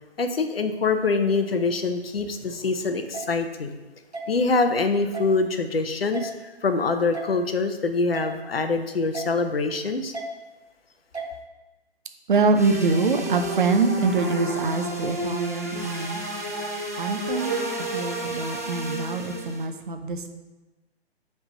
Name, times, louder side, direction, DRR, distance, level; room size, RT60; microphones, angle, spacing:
voice 1, 0.2-3.8 4.3-10.1, left 3 dB, 65° left, 7 dB, 0.7 m, -24 dB
sound 1, 3.1-3.3 4.1-4.3 5.1-5.3 6.1-6.3 7.1-7.3 8.1-8.3 9.1-9.3 10.1-10.3 11.1-11.3, right 4 dB, 90° right, 1.0 m, -33 dB
voice 2, 12.3-16.2 17.0-17.6 17.9-20.3, right 4 dB, 50° right, 6 dB, 0.7 m, -24 dB
sound 2, 12.5-19.6, right 1 dB, 15° right, 0.3 m, -31 dB
7.0 x 3.5 x 5.1 m, 1.1 s
figure-of-eight pair, 130°, 32 cm